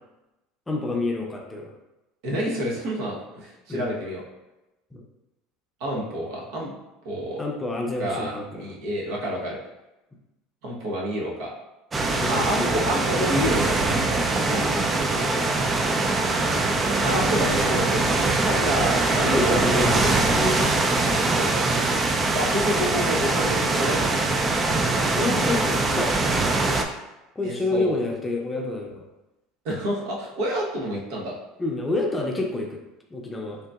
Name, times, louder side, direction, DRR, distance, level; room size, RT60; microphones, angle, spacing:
voice 1, 0.7-1.7 3.7-3.9 4.9-5.0 7.4-8.6 12.1-13.1 17.8-18.4 19.3-20.7 21.7-22.0 24.9-26.2 27.4-29.0 31.6-32.8 33.1-33.6, left 2 dB, 15° left, 0 dB, 0.6 m, -29 dB
voice 2, 2.2-4.2 5.8-6.8 7.0-7.4 8.0-9.6 10.6-11.5 12.3-13.9 14.5-15.4 17.0-20.4 21.0-21.8 22.3-24.2 27.4-28.0 29.6-31.3, equal, 70° right, -3 dB, 0.9 m, -29 dB
sound 1, 11.9-26.8, right 2 dB, 25° right, 0.4 m, -23 dB
3.7 x 2.7 x 2.3 m, 0.98 s
hypercardioid pair, 85°, 0 cm